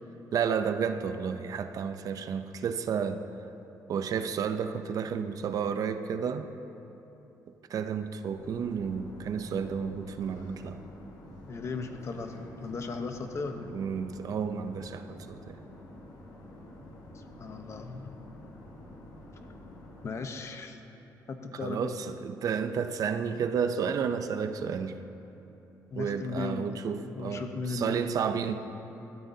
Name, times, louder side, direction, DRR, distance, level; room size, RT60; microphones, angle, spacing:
voice 1, 0.3-3.3 3.9-6.5 7.7-10.9 13.7-15.6 21.5-25.0 26.0-28.5, right 6 dB, 60° right, 9 dB, 0.6 m, -31 dB
sound 1, 8.3-20.1, left 1 dB, 80° left, 3.0 m, -49 dB
voice 2, 11.5-13.7 16.9-18.2 20.0-20.8 21.3-21.9 25.9-26.8 27.1-28.0, left 4 dB, 45° left, 6 dB, 1.0 m, -37 dB
17.5 x 14.0 x 2.8 m, 3.0 s
cardioid pair, 120°, 7 cm